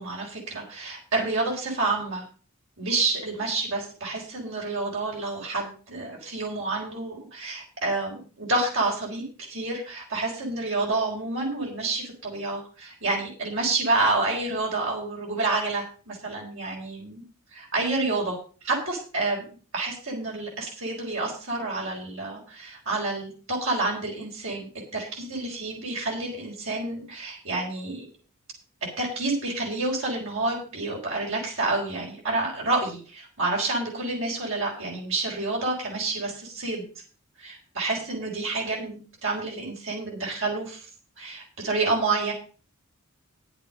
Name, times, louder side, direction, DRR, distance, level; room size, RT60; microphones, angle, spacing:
voice 1, 0.0-2.2 2.8-9.2 9.5-17.2 17.5-18.4 18.6-19.4 19.7-28.1 29.0-36.8 37.4-40.8 41.2-42.3, right 3 dB, 60° right, -3 dB, 4.4 m, -29 dB
10.5 x 7.9 x 6.4 m, 0.38 s
head